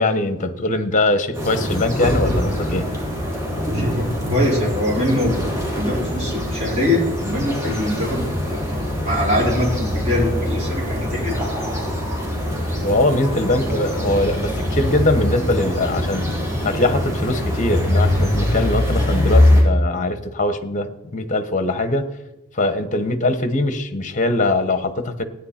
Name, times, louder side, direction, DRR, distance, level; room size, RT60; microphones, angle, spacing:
voice 1, 0.0-2.9 12.8-16.3 16.6-22.1 22.5-25.2, left 2 dB, 35° left, 10 dB, 1.1 m, -21 dB
sound 1, 1.3-19.6, left 1 dB, 15° right, 4.1 m, -22 dB
voice 2, 3.6-5.3 5.7-11.4, left 1 dB, 30° right, -5 dB, 4.8 m, -23 dB
17.0 x 9.9 x 4.3 m, 0.96 s
head